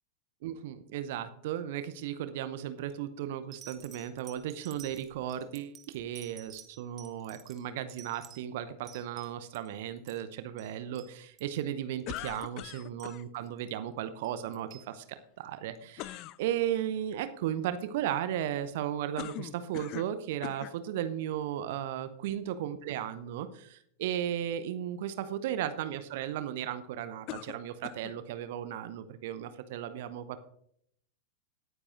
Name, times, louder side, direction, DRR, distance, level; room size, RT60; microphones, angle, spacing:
voice 1, 0.4-30.4, right 10 dB, 50° right, 12 dB, 0.7 m, -35 dB
sound 1, 2.9-3.0 3.5-9.7 10.0-10.7 10.9-11.1 11.4-11.6 12.0-13.6 14.2-14.9 15.7-15.8, right 9 dB, 25° right, 1.6 m, -52 dB
sound 2, 12.1-13.2 16.0-16.4 19.2-20.2 20.4-20.8 21.6-21.7 27.3-28.2, left 17 dB, 40° left, 0.3 m, -41 dB
19.0 x 9.7 x 2.5 m, 0.69 s
figure-of-eight pair, 90°, 0 cm